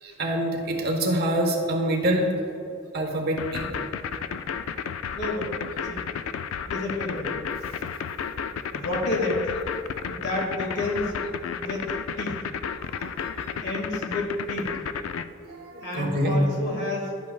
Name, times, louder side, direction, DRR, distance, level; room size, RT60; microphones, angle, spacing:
voice 1, 0.0-2.4 2.9-3.7 13.0-13.6 15.4-16.4, right 1 dB, 50° right, 1 dB, 1.2 m, -26 dB
sound 1, 3.4-15.2, left 7 dB, 80° left, 0.4 m, -32 dB
voice 2, 5.1-5.6 5.8-6.1 6.7-7.4 8.7-9.5 10.1-11.2 11.6-11.8 12.2-12.4 13.6-14.8 15.8-17.1, left 2 dB, 55° left, -1 dB, 1.9 m, -30 dB
12.0 x 8.4 x 2.3 m, 2.4 s
head